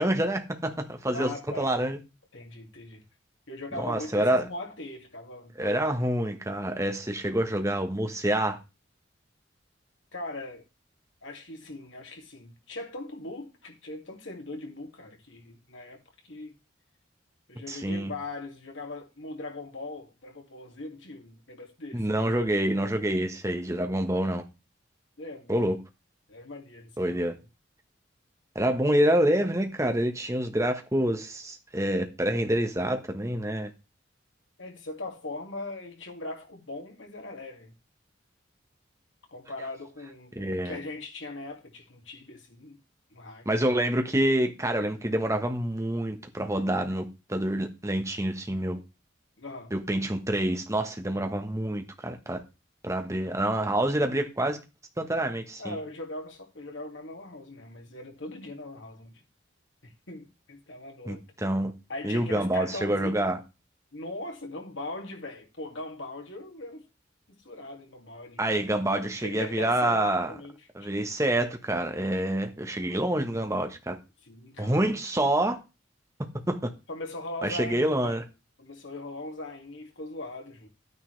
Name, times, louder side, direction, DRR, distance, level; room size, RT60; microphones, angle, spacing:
voice 1, 0.0-2.0 3.8-4.4 5.6-8.6 17.7-18.1 21.9-24.4 25.5-25.7 27.0-27.3 28.5-33.7 40.3-40.8 43.4-48.8 49.7-52.4 52.8-54.6 55.0-55.7 61.1-61.7 62.0-63.4 68.4-70.3 70.7-74.0 74.6-75.6 76.5-76.7 77.4-78.2, right 1 dB, 15° right, 1.3 m, -27 dB
voice 2, 1.1-1.7 2.3-3.0 3.5-6.0 10.1-10.6 11.2-16.6 17.5-22.1 23.1-23.2 25.2-25.6 26.3-27.2 34.6-37.7 39.3-42.8 43.1-43.6 49.4-49.7 55.6-59.2 59.8-61.2 61.9-63.3 63.9-66.8 67.3-68.4 69.0-71.1 74.2-74.9 76.9-78.2 78.6-80.7, left 2 dB, 75° left, 2.5 m, -40 dB
11.0 x 9.5 x 3.3 m
head